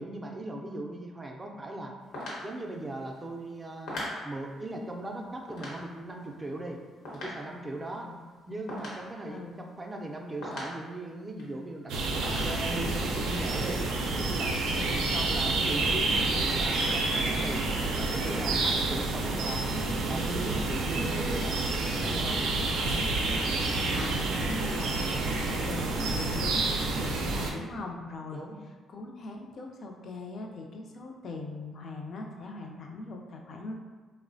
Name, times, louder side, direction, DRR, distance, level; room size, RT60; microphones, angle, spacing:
voice 1, 0.0-1.9 2.4-4.0 4.2-6.8 7.1-8.1 8.5-11.9 12.2-13.8 14.2-14.5 15.1-17.6 17.9-19.7 20.1-21.6 22.0-22.4 28.3-28.6, right 1 dB, 20° right, 1 dB, 0.4 m, -38 dB
sound 1, 2.0-10.1 10.4-11.6 11.9-12.0 12.2-13.2, left 1 dB, 80° left, 0.9 m, -42 dB
voice 2, 9.3-9.6 14.7-15.0 23.6-28.4 28.9-33.7, left 3 dB, 55° left, 1 dB, 0.4 m, -40 dB
sound 2, 11.9-27.5, right 2 dB, 90° right, 0.4 m, -29 dB
3.0 x 2.0 x 2.5 m, 1.4 s
cardioid pair, 90°, 0 cm